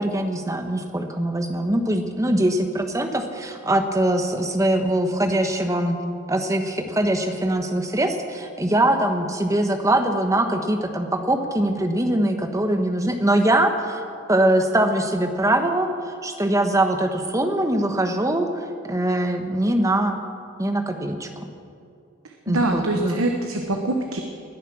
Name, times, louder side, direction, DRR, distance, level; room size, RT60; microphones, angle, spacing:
voice 1, 0.0-6.0 6.3-14.0 14.3-18.5 18.8-20.2 20.6-21.3 22.5-23.2, right 1 dB, 15° right, 6 dB, 1.1 m, -22 dB
voice 2, 22.2-24.2, right 2 dB, 80° right, 3 dB, 1.1 m, -24 dB
20.0 x 10.0 x 6.1 m, 2.4 s
head